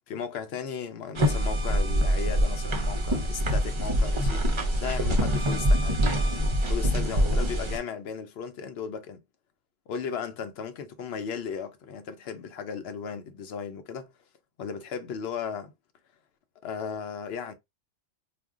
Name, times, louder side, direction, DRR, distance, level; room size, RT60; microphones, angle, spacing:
voice 1, 0.1-4.4 4.7-6.0 6.7-9.2 9.9-14.1 14.6-15.7 16.6-17.5, left 6 dB, 65° left, 0.8 m, -36 dB
sound 1, 1.2-7.8, equal, 45° right, 0.4 m, -25 dB
2.4 x 2.1 x 3.6 m
omnidirectional pair, 1.2 m